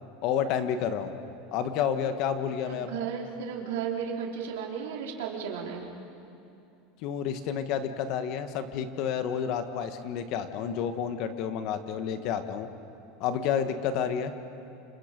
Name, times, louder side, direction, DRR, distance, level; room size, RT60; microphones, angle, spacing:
voice 1, 0.2-1.1 1.5-2.9 7.0-12.7 13.2-14.3, left 8 dB, 45° left, 9 dB, 1.4 m, -30 dB
voice 2, 2.7-5.9, right 7 dB, 85° right, -1 dB, 3.7 m, -34 dB
29.5 x 27.0 x 5.3 m, 2.8 s
supercardioid pair, 165°, 0 cm